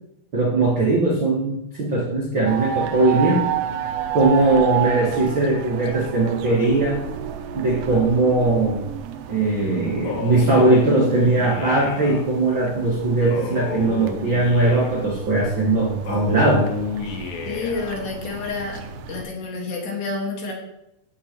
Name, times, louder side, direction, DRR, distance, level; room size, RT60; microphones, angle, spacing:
voice 1, 0.3-3.5 4.1-7.0 7.5-8.8 9.3-16.7, right 2 dB, 50° right, -5 dB, 1.4 m, -19 dB
sound 1, 2.5-19.2, right 9 dB, 80° right, 2.8 m, -32 dB
Male speech man speaking, 10.0-12.2 13.3-15.1 16.0-18.0, left 5 dB, 85° left, 1.7 m, -32 dB
voice 2, 17.5-18.8 19.1-20.5, left 3 dB, 65° left, -1 dB, 3.9 m, -29 dB
15.5 x 7.2 x 3.1 m, 0.82 s
omnidirectional pair, 5.2 m